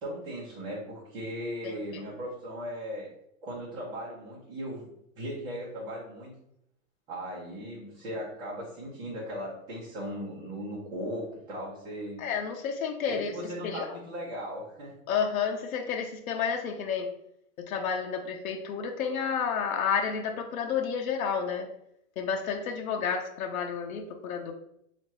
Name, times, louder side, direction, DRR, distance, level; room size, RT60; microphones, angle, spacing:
voice 1, 0.0-3.1 3.4-4.9 5.2-6.3 7.1-12.2 13.1-14.9, equal, 10° right, -9 dB, 0.8 m, -37 dB
voice 2, 1.6-2.0 12.2-13.3 13.6-14.0 15.1-17.1 17.7-21.7 22.2-24.5, left 6 dB, 85° left, 3 dB, 0.7 m, -31 dB
2.8 x 2.5 x 4.2 m, 0.76 s
supercardioid pair, 175°, 41 cm